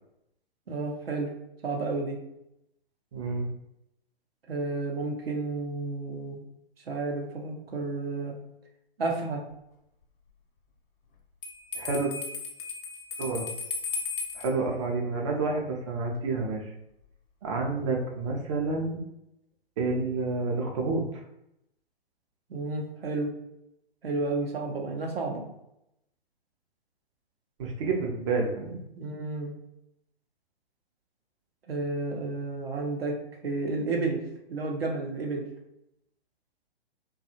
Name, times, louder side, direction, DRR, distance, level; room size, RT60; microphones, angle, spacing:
voice 1, 0.7-1.3 1.6-2.2 4.5-6.4 6.9-8.4 9.0-9.4 22.5-23.3 24.0-25.4 29.0-29.5 31.7-33.2 33.4-34.2 34.5-35.4, right 3 dB, 70° right, 0 dB, 0.7 m, -31 dB
voice 2, 3.1-3.5 11.7-12.1 13.2-13.5 14.3-16.6 17.4-19.0 19.8-21.2 27.6-28.8, right 3 dB, 30° right, 0 dB, 0.5 m, -29 dB
Bell, 11.4-14.5, left 4 dB, 55° left, 0.8 m, -35 dB
2.6 x 2.3 x 2.7 m, 0.82 s
figure-of-eight pair, 125°, 31 cm